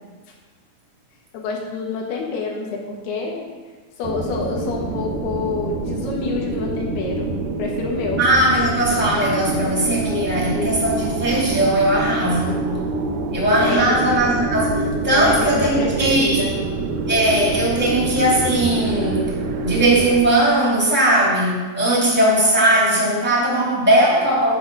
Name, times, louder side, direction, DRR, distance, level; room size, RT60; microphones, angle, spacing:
voice 1, 1.3-3.4 4.0-8.2 13.6-14.0 15.1-16.6 23.4-23.5, left 4 dB, 80° left, 0 dB, 3.4 m, -27 dB
sound 1, 4.0-20.2, right 3 dB, 75° right, 1.9 m, -26 dB
voice 2, 8.2-12.6 13.3-16.4 17.1-19.3 19.6-24.5, right 1 dB, 5° right, -5 dB, 1.8 m, -19 dB
8.1 x 7.4 x 5.4 m, 1.4 s
omnidirectional pair, 4.5 m